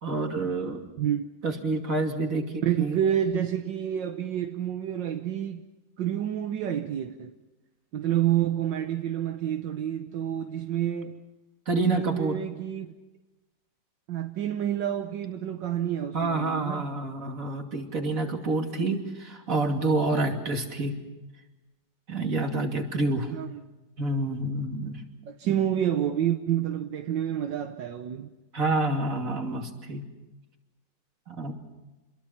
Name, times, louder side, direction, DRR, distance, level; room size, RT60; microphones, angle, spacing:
voice 1, 0.0-0.8 1.4-3.0 11.7-12.4 16.1-20.9 22.1-23.3 24.0-25.0 28.5-30.0 31.3-31.5, right 2 dB, 45° right, 3.0 m, -28 dB
voice 2, 2.6-5.6 6.0-7.3 7.9-11.2 11.7-12.9 14.1-16.8 23.3-23.6 25.2-28.3, right 10 dB, 75° right, 1.6 m, -28 dB
27.5 x 22.0 x 5.8 m
omnidirectional pair, 2.0 m